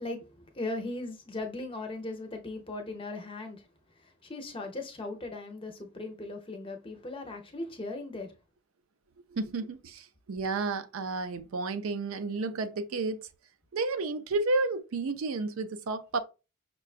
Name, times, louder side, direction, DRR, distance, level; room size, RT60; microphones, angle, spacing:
voice 1, 0.0-3.7 4.0-8.3, left 2 dB, 25° left, 0.6 m, -38 dB
voice 2, 9.3-13.3 13.7-16.2, right 3 dB, 65° right, 0.4 m, -31 dB
5.6 x 2.2 x 2.4 m
head